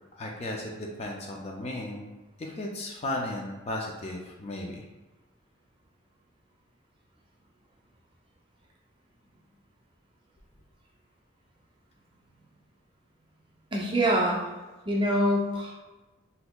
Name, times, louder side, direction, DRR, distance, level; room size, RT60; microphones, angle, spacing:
voice 1, 0.2-2.1 2.4-4.8, left 1 dB, 30° left, 0 dB, 0.3 m, -35 dB
voice 2, 13.7-14.4 14.9-15.7, equal, 25° right, -3 dB, 0.5 m, -25 dB
3.9 x 2.7 x 2.2 m, 1.1 s
head